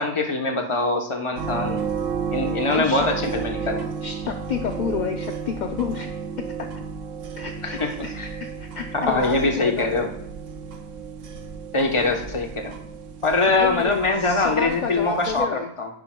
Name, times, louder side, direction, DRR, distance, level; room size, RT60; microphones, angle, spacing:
voice 1, 0.0-1.8 2.3-3.9 7.6-8.3 8.9-10.1 11.7-12.7 13.2-15.9, left 3 dB, 25° left, 4 dB, 1.0 m, -23 dB
sound 1, 1.4-15.4, right 6 dB, 85° right, 1.2 m, -33 dB
voice 2, 2.7-3.1 3.6-3.7 4.0-6.2 6.6-6.8 7.4-10.1 13.6-15.7, left 7 dB, 50° left, 5 dB, 0.6 m, -30 dB
10.5 x 9.9 x 2.2 m, 0.80 s
omnidirectional pair, 1.3 m